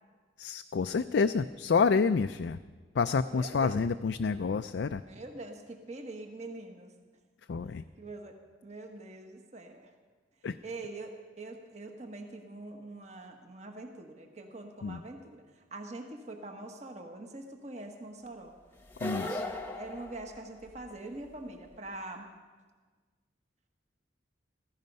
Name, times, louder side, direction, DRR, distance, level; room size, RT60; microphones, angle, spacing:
voice 1, 0.4-2.6 2.9-5.0 7.5-7.8 10.4-10.6 14.8-15.0 19.0-19.4, left 5 dB, 70° left, 9 dB, 0.4 m, -28 dB
voice 2, 3.3-3.7 5.0-6.9 7.7-9.9 10.6-18.6 19.2-22.3, right 2 dB, 40° right, 4 dB, 1.3 m, -44 dB
sound 1, 18.9-20.9, left 1 dB, 10° left, 1.0 m, -38 dB
16.0 x 14.5 x 5.4 m, 1.4 s
head